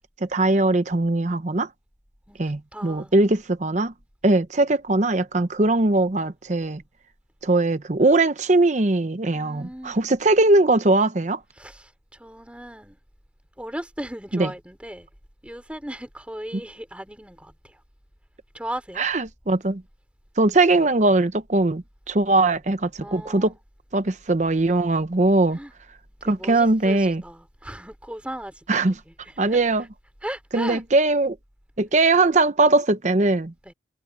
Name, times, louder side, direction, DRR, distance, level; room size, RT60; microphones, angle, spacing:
voice 1, 0.2-1.7 2.4-3.9 4.2-6.8 7.4-11.4 14.3-14.5 19.0-19.8 20.4-23.5 23.9-25.6 26.2-27.2 28.7-28.9 29.4-29.8 30.5-31.4 31.8-33.5, right 2 dB, 40° right, 0.7 m, -20 dB
voice 2, 2.7-3.1 9.3-10.1 11.5-13.0 13.6-15.1 15.4-17.8 18.5-19.0 23.0-23.6 25.5-25.7 26.2-29.9 30.2-30.8 33.6-33.7, right 1 dB, 5° right, 3.1 m, -37 dB
head